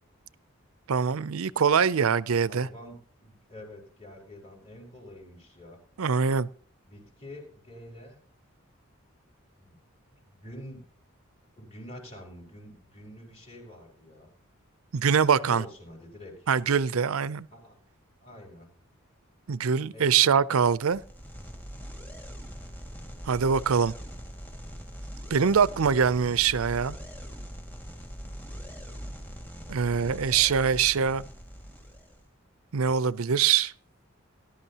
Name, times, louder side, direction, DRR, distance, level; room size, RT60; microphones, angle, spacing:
voice 1, 0.9-2.7 6.0-6.5 14.9-15.6 16.5-17.5 19.5-21.0 23.3-23.9 25.3-26.9 29.7-31.2 32.7-33.7, right 6 dB, 85° right, 0.5 m, -23 dB
voice 2, 2.5-5.8 6.9-8.2 9.6-9.7 10.1-10.8 11.6-14.3 15.3-16.5 17.5-17.8 18.2-18.7 19.9-20.5 29.9-30.2, left 1 dB, 30° left, 5.1 m, -46 dB
sound 1, 20.8-32.3, equal, 10° left, 2.0 m, -42 dB
19.5 x 11.5 x 2.9 m
head